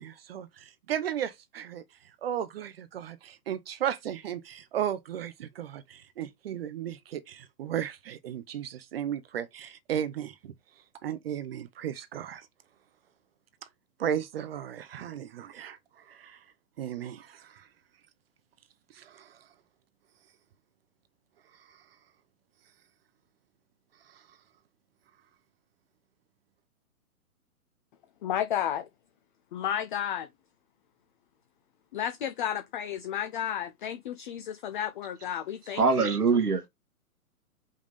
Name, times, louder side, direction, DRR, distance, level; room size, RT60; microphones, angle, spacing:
voice 1, 0.0-1.8 2.2-10.5 11.0-12.5 14.0-16.4 16.8-17.7 18.9-19.4 21.5-21.8 24.1-24.2, right 10 dB, 40° right, 0.7 m, -35 dB
voice 2, 28.2-28.9 29.5-30.3 31.9-35.8, left 10 dB, 35° left, 0.6 m, -32 dB
voice 3, 35.8-36.7, right 4 dB, 85° right, 1.6 m, -23 dB
5.5 x 3.6 x 5.1 m
figure-of-eight pair, 125°, 45 cm